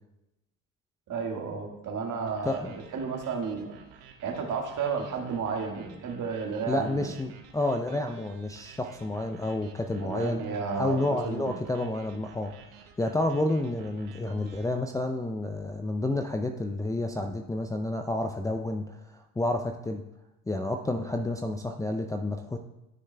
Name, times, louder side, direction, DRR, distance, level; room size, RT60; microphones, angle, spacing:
voice 1, 1.1-3.7 4.2-7.2 10.0-11.5, right 5 dB, 50° right, 1 dB, 1.7 m, -32 dB
sound 1, 2.3-14.6, right 7 dB, 75° right, 1.0 m, -53 dB
voice 2, 2.4-2.7 6.7-10.4 10.8-12.5 12.8-20.0 20.5-22.6, left 2 dB, 10° left, 3 dB, 0.4 m, -30 dB
13.0 x 6.4 x 2.2 m, 0.92 s
hypercardioid pair, 60°, 39 cm